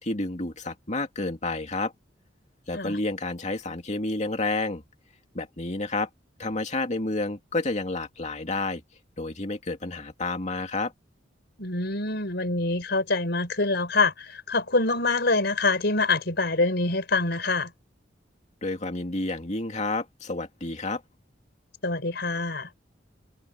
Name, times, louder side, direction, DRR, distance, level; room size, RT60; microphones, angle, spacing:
voice 1, 0.0-1.9 2.7-4.8 5.3-6.1 6.4-8.8 9.2-10.9 18.6-21.0, left 2 dB, 40° left, 2.5 m, -30 dB
voice 2, 11.6-17.7 21.8-22.7, left 3 dB, 65° left, 5.1 m, -25 dB
head